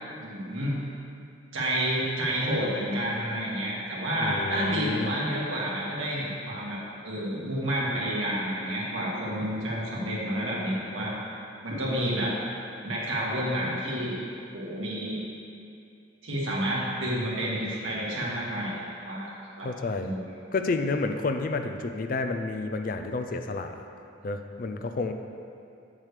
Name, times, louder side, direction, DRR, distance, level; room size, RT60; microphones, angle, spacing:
voice 1, 0.2-0.7 1.5-6.8 7.0-11.1 11.6-12.4 12.8-14.2 14.5-15.2 16.2-19.3 19.6-19.7 20.0-20.2, equal, 90° right, -6 dB, 1.8 m, -29 dB
voice 2, 4.2-5.1 19.6-20.1 20.5-23.8 24.2-25.1, left 3 dB, 45° left, 6 dB, 0.4 m, -30 dB
8.2 x 7.2 x 3.3 m, 2.5 s
head